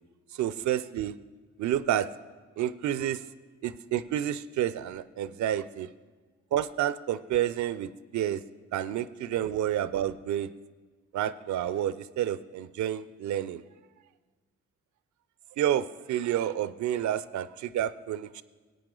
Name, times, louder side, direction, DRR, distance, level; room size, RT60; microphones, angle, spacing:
voice 1, 0.3-1.1 1.6-2.1 2.6-3.2 3.6-5.9 6.5-8.4 8.7-10.5 11.1-13.6 15.6-18.4, right 11 dB, 75° right, 16 dB, 0.5 m, -29 dB
15.0 x 8.8 x 3.8 m, 1.4 s
supercardioid pair, 45°, 29 cm